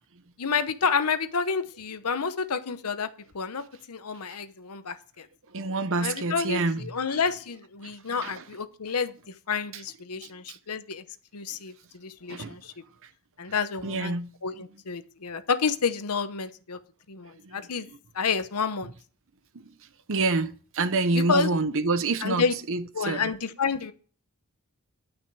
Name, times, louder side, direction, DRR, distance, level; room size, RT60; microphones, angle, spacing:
voice 1, 0.4-3.1 3.3-5.3 6.0-11.0 11.3-12.7 13.4-16.8 17.1-17.9 18.1-18.9 21.1-21.5 22.2-22.5 22.9-23.9, left 5 dB, 90° left, 0.9 m, -29 dB
voice 2, 5.5-6.8 7.1-7.2 7.8-7.9 8.2-8.4 10.2-10.6 12.3-12.6 13.8-14.3 17.4-17.6 19.5-19.6 20.1-23.3, right 3 dB, 65° right, 0.8 m, -27 dB
11.0 x 6.2 x 4.8 m
head